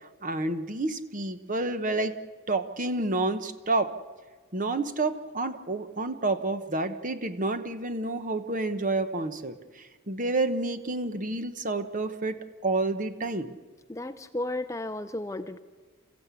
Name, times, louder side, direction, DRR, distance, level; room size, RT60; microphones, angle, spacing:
voice 1, 0.0-2.1 2.5-3.9 4.5-13.5, right 2 dB, 35° right, 9 dB, 1.1 m, -29 dB
voice 2, 13.9-15.6, left 1 dB, 15° left, 10 dB, 0.6 m, -33 dB
28.5 x 15.5 x 8.4 m, 1.4 s
head